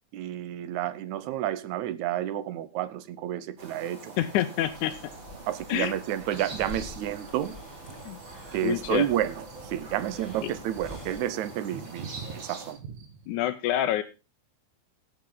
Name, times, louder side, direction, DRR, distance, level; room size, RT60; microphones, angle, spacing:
voice 1, 0.1-4.1 5.5-7.6 8.5-12.1 12.3-12.8, right 12 dB, 70° right, 2.0 m, -30 dB
sound 1, 3.6-12.7, right 2 dB, 35° right, 3.5 m, -45 dB
voice 2, 4.2-4.9 5.7-5.9 8.1-8.2 8.6-9.1 13.3-14.0, left 12 dB, 75° left, 2.0 m, -27 dB
sound 2, 4.6-11.2, left 2 dB, 15° left, 3.1 m, -47 dB
sound 3, 5.8-13.3, right 7 dB, 90° right, 3.4 m, -47 dB
17.0 x 7.2 x 3.9 m
omnidirectional pair, 3.8 m